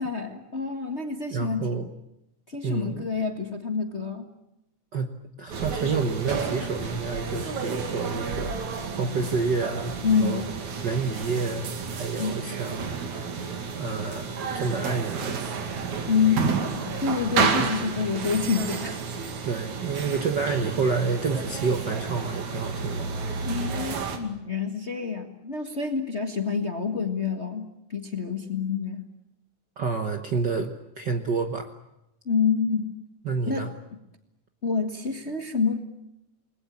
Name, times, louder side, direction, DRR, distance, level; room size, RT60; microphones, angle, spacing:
voice 1, 0.0-1.8 2.5-4.3 10.0-10.4 12.2-12.4 16.1-16.5 16.8-19.1 23.4-29.0 32.2-32.9 33.5-33.7 34.6-35.8, left 5 dB, 30° left, 6 dB, 1.4 m, -27 dB
voice 2, 1.3-1.9 2.6-3.1 4.9-5.1 5.4-8.5 8.9-10.4 10.8-13.0 13.8-15.4 17.5-17.9 19.4-23.1 29.8-31.7 33.2-33.7, right 4 dB, 50° right, 6 dB, 1.4 m, -29 dB
sound 1, 5.5-24.2, right 5 dB, 65° right, 3.7 m, -31 dB
29.0 x 21.0 x 8.5 m, 0.87 s
omnidirectional pair, 3.6 m